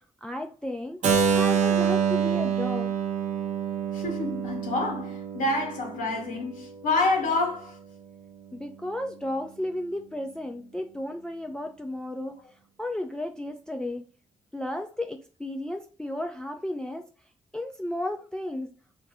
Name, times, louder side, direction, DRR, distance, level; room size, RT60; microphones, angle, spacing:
voice 1, 0.2-1.0 1.3-2.9 8.5-12.4 12.8-14.0 14.5-17.0 17.5-18.7, left 1 dB, 5° left, 0.3 m, -33 dB
Keyboard (musical), 1.0-6.9, right 7 dB, 65° right, 0.6 m, -27 dB
voice 2, 3.9-7.8, left 2 dB, 75° left, 1.0 m, -28 dB
2.4 x 2.2 x 3.4 m
hypercardioid pair, 40°, 14 cm